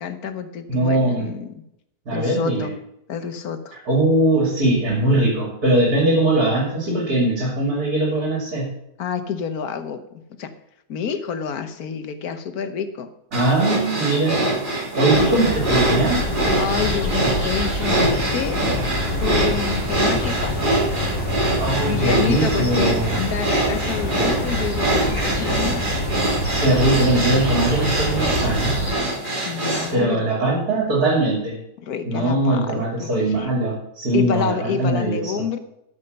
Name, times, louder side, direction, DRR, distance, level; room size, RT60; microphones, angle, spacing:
voice 1, 0.0-1.5 2.1-2.7 3.1-3.8 9.0-10.0 10.4-10.5 10.9-13.1 15.1-15.5 16.6-18.6 19.2-20.6 21.8-25.9 29.4-30.3 31.8-33.1 33.4-33.5 34.1-35.6, left 7 dB, 70° left, 9 dB, 1.5 m, -28 dB
voice 2, 0.7-1.3 2.1-2.7 3.7-8.7 13.3-14.4 15.0-16.2 21.6-23.2 26.6-28.7 29.9-31.6 32.0-35.4, right 1 dB, 65° right, -3 dB, 3.2 m, -21 dB
sound 1, 13.3-29.9, right 2 dB, 30° right, 2.8 m, -24 dB
sound 2, 15.1-28.9, left 1 dB, 15° left, 4.9 m, -26 dB
13.5 x 5.7 x 6.5 m, 0.81 s
omnidirectional pair, 1.7 m